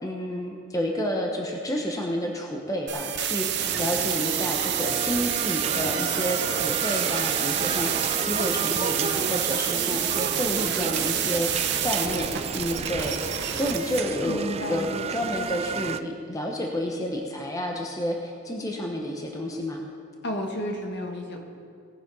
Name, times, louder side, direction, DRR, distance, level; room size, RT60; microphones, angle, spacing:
voice 1, 0.0-13.2 13.5-14.4 14.7-19.8, equal, 15° left, 1 dB, 1.0 m, -30 dB
sound 1, 2.9-14.0, right 10 dB, 60° right, 0.9 m, -28 dB
sound 2, 3.6-16.0, right 6 dB, 30° right, 0.3 m, -32 dB
voice 2, 14.2-15.3 20.2-21.4, equal, 60° left, 2 dB, 1.6 m, -32 dB
18.5 x 7.1 x 5.5 m, 2.3 s
head